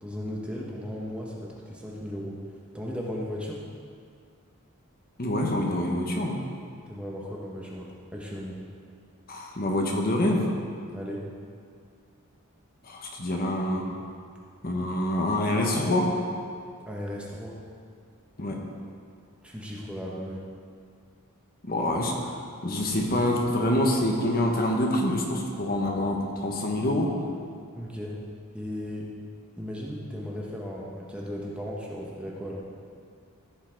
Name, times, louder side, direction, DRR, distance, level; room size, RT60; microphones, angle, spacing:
voice 1, 0.0-2.5 2.7-3.6 6.9-8.6 10.9-11.3 16.9-17.6 19.4-20.5 27.7-28.2 28.5-29.1 29.6-32.7, equal, 5° right, -3 dB, 1.0 m, -36 dB
voice 2, 5.2-6.4 9.3-10.5 12.8-13.8 14.6-16.1 18.4-18.6 21.6-22.4 22.6-27.1, left 1 dB, 40° left, 1 dB, 1.1 m, -26 dB
14.5 x 5.7 x 4.5 m, 2.3 s
head